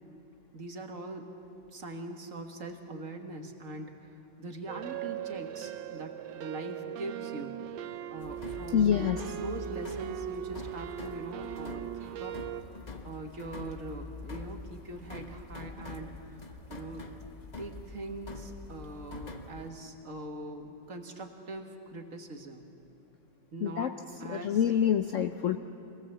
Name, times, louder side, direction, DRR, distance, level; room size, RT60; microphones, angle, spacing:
voice 1, 0.5-1.3 1.7-7.6 8.1-9.1 9.4-12.4 12.8-16.2 16.7-17.1 17.6-22.6 23.5-24.6, right 2 dB, 45° right, 4 dB, 1.8 m, -42 dB
sound 1, 4.7-12.6, right 11 dB, 80° right, 1.4 m, -39 dB
sound 2, 8.2-19.7, left 3 dB, 30° left, 0.8 m, -45 dB
voice 2, 8.7-9.2 23.6-25.6, left 9 dB, 85° left, 8 dB, 0.6 m, -27 dB
25.5 x 19.0 x 7.3 m, 2.7 s
omnidirectional pair, 2.1 m